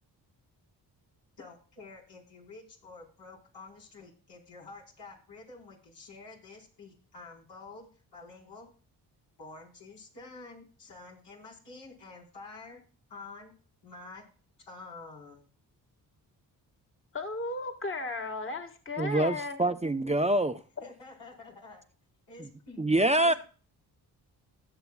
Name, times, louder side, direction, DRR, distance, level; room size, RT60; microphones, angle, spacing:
voice 1, 1.4-8.7 9.4-12.8 13.1-13.5 13.8-14.2 14.6-15.5 20.8-21.8 22.3-22.9 23.2-23.4, left 3 dB, 75° left, 4.6 m, -49 dB
voice 2, 17.1-19.6, left 2 dB, 30° left, 1.7 m, -35 dB
voice 3, 19.0-20.6 22.8-23.3, right 1 dB, 15° right, 0.7 m, -25 dB
19.5 x 6.9 x 2.3 m
supercardioid pair, 50°, 43 cm